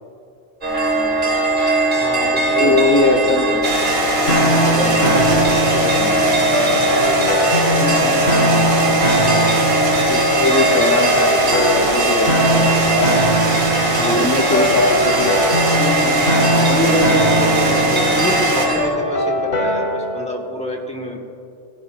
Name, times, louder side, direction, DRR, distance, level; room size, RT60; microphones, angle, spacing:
sound 1, 0.6-18.9, right 1 dB, 50° right, 2.3 m, -20 dB
voice 1, 0.9-1.5 2.5-3.6 10.0-13.4 14.0-15.5, left 2 dB, 25° left, 1 dB, 0.4 m, -21 dB
voice 2, 2.0-3.6 4.6-6.1 13.9-15.1 16.5-21.3, equal, 5° left, 0 dB, 1.2 m, -27 dB
sound 2, 3.6-18.7, right 2 dB, 80° right, 1.8 m, -22 dB
sound 3, 4.3-20.2, equal, 60° left, 1.8 m, -21 dB
17.5 x 15.0 x 2.4 m, 2.5 s
omnidirectional pair, 1.1 m